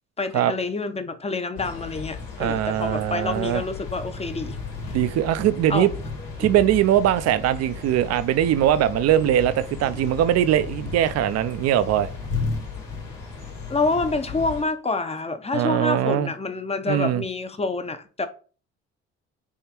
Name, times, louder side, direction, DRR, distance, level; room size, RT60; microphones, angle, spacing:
voice 1, 0.2-4.6 4.9-5.0 5.7-5.9 6.4-6.5 9.2-9.3 9.9-10.0 13.7-18.3, left 3 dB, 20° left, 0.7 m, -27 dB
sound 1, 1.6-14.6, left 4 dB, 80° left, 1.4 m, -34 dB
voice 2, 2.4-3.6 4.9-5.9 6.4-12.1 15.5-16.3 16.9-17.2, right 11 dB, 55° right, 0.5 m, -21 dB
3.6 x 3.1 x 4.4 m
hypercardioid pair, 60°, 30 cm